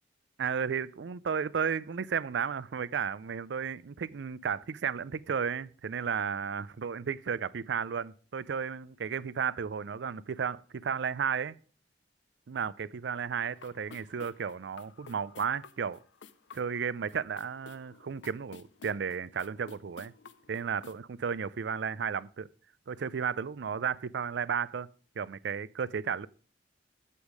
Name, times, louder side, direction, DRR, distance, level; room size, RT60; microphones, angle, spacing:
voice 1, 0.4-11.6 12.5-16.0 16.5-20.1 20.5-22.5 22.9-24.9 25.2-26.3, right 6 dB, 70° right, 0.4 m, -33 dB
sound 1, 13.5-21.0, left 5 dB, 80° left, 0.6 m, -54 dB
8.4 x 8.2 x 4.8 m
head